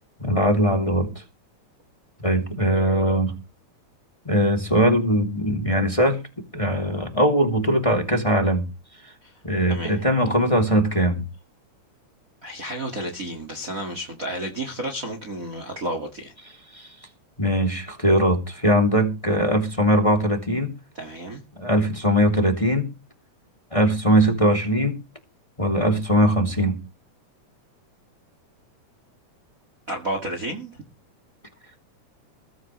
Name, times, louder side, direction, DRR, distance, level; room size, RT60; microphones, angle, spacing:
voice 1, 0.2-1.2 2.2-3.3 4.2-6.2 6.5-8.7 9.0-9.1 9.4-11.2 16.7-16.9 17.4-20.8 21.6-22.9 23.7-25.0 25.6-26.8, equal, 10° left, 2.7 m, -21 dB
voice 2, 9.7-10.0 12.4-16.3 21.0-21.4 29.9-30.7, right 1 dB, 30° right, 2.1 m, -31 dB
21.0 x 14.0 x 3.2 m
omnidirectional pair, 3.5 m